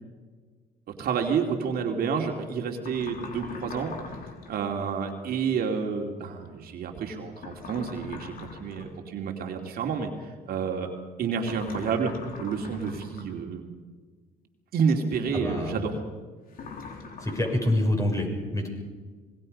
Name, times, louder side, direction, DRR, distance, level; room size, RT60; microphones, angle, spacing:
voice 1, 1.0-4.2 4.5-10.9 11.2-12.1 12.4-13.7 14.7-15.9, right 6 dB, 60° right, 2 dB, 2.7 m, -29 dB
sound 1, 2.8-4.6 7.4-9.0 11.4-13.4 16.5-17.7, left 4 dB, 55° left, 3.6 m, -41 dB
voice 2, 15.3-15.9 17.2-18.7, left 1 dB, 20° left, 1 dB, 6.9 m, -26 dB
26.0 x 21.0 x 5.4 m, 1.4 s
cardioid pair, 100°, 18 cm